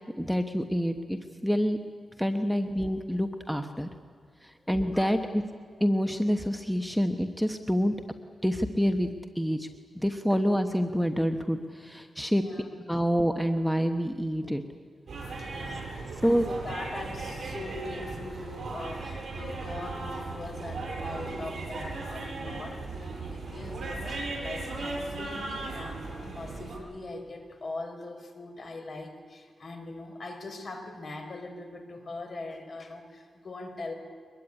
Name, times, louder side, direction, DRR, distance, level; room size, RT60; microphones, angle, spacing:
voice 1, 0.2-1.8 2.2-3.9 4.4-5.4 5.8-7.9 8.4-9.7 9.9-12.4 12.9-14.6 16.2-16.4, equal, ahead, 7 dB, 1.1 m, -27 dB
voice 2, 12.3-12.7 15.4-33.9, left 2 dB, 45° left, 5 dB, 4.2 m, -41 dB
sound 1, 15.1-26.8, right 3 dB, 50° right, 7.4 m, -37 dB
23.0 x 21.5 x 9.9 m, 2.1 s
wide cardioid pair, 115°, 0 cm